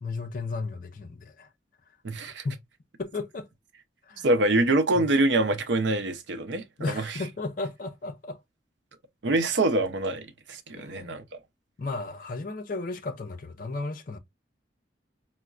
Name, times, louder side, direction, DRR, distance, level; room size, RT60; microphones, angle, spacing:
voice 1, 0.0-1.5 2.4-2.6 3.0-3.5 4.0-4.3 4.9-5.1 6.8-8.4 10.7-11.2 11.8-14.2, left 3 dB, 45° left, 0.5 m, -34 dB
voice 2, 2.0-2.4 4.2-7.2 9.2-11.2, right 2 dB, 70° right, 0.6 m, -25 dB
4.5 x 2.1 x 2.3 m
head